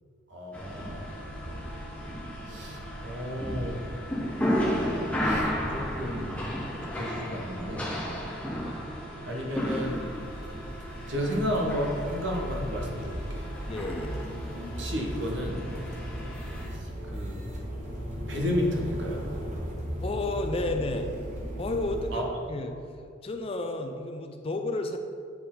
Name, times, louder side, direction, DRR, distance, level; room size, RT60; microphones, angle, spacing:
voice 1, 0.3-1.1 2.5-3.8 5.2-6.4 6.9-7.8 9.3-10.0 11.1-13.5 14.8-15.6 16.7-17.4 18.3-19.2 22.1-22.3, equal, 65° right, 0 dB, 1.2 m, -32 dB
sound 1, 0.5-16.7, equal, 5° left, 0.8 m, -34 dB
voice 2, 1.4-1.8 13.7-14.3 16.0-16.3 20.0-21.1 21.6-22.7 23.2-25.0, left 2 dB, 30° left, 5 dB, 0.4 m, -32 dB
sound 2, 9.8-22.1, equal, 35° right, 1.0 m, -37 dB
8.4 x 4.4 x 3.8 m, 2.4 s
head